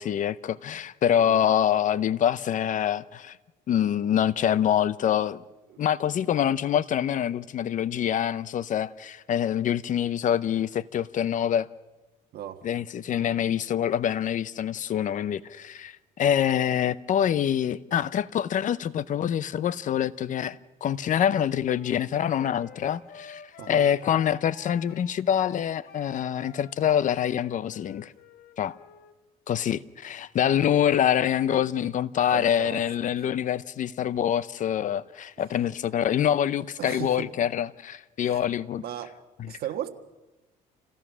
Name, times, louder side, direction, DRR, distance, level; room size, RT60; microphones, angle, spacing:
voice 1, 0.0-3.4 3.7-5.4 5.8-11.7 12.6-23.4 23.7-28.1 28.6-28.8 29.5-38.8 39.4-39.5, left 9 dB, 50° left, 0.7 m, -25 dB
voice 2, 12.3-12.7 23.6-23.9 31.5-31.6 32.3-32.8 33.2-33.4 36.8-37.3 38.2-38.4 38.8-39.2 39.5-39.9, right 11 dB, 65° right, 1.5 m, -36 dB
Wind instrument woodwind instrument, 21.6-29.2, left 7 dB, 70° left, 1.4 m, -49 dB
27.5 x 16.5 x 6.2 m
cardioid pair, 110°, 17 cm